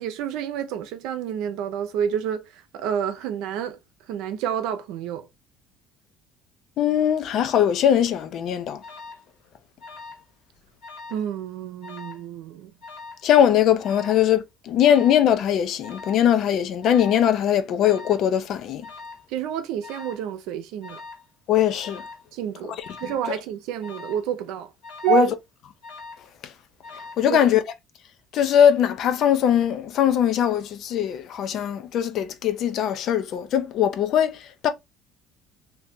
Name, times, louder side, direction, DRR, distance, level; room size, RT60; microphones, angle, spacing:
voice 1, 0.0-3.8 4.1-5.3 11.1-12.7 19.3-21.0 22.3-24.7 25.0-25.3 27.3-27.4, right 9 dB, 75° right, 0.7 m, -29 dB
voice 2, 6.8-8.8 13.2-18.8 21.5-22.0 25.1-25.3 27.2-27.6 28.3-34.7, left 9 dB, 55° left, 0.6 m, -21 dB
Alarm, 8.8-9.2 9.8-10.3 10.6-11.2 11.8-12.2 12.8-13.3 13.8-14.3 14.8-15.3 15.8-16.2 16.8-17.2 17.8-18.2 18.8-19.3 19.8-20.3 20.8-21.2 21.8-22.2 22.8-23.3 23.8-24.2 24.8-25.3 25.8-26.3 26.8-27.3, left 4 dB, 85° left, 1.4 m, -42 dB
2.8 x 2.8 x 3.5 m
cardioid pair, 135°, 0 cm